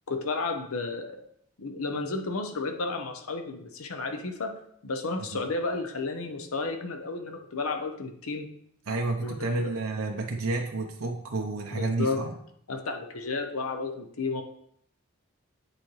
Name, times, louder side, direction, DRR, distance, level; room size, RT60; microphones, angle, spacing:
voice 1, 0.1-1.2 1.6-4.5 4.8-8.5 9.2-9.7 11.7-12.2 12.7-14.4, left 3 dB, 85° left, 5 dB, 0.8 m, -32 dB
voice 2, 8.9-12.3, right 3 dB, 85° right, 1 dB, 0.7 m, -30 dB
9.0 x 4.3 x 3.1 m, 0.68 s
head